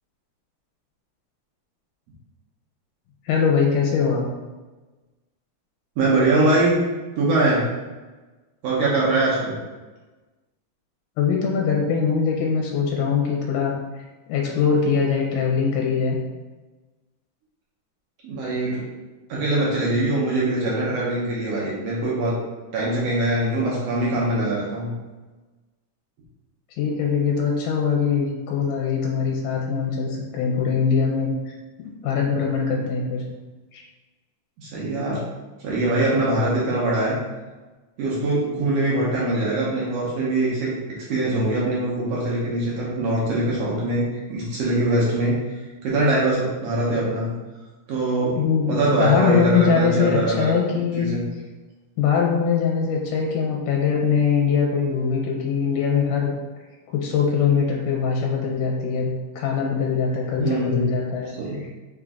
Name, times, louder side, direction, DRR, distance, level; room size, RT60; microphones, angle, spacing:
voice 1, 3.3-4.3 11.2-13.7 14.3-16.2 26.8-31.5 32.0-33.2 33.7-33.8 48.4-51.1 52.0-56.3 56.9-59.1 59.4-61.4, left 6 dB, 80° left, -1 dB, 2.1 m, -22 dB
voice 2, 6.0-6.8 7.2-7.7 8.6-9.6 18.2-18.8 19.3-22.3 22.7-24.9 34.6-35.2 35.6-37.2 38.0-40.8 41.1-45.4 45.8-47.3 47.9-48.4 48.7-50.5 51.0-51.2 60.4-60.9 61.4-61.5, right 2 dB, 70° right, -6 dB, 1.6 m, -22 dB
5.0 x 2.5 x 3.5 m, 1.2 s
omnidirectional pair, 3.7 m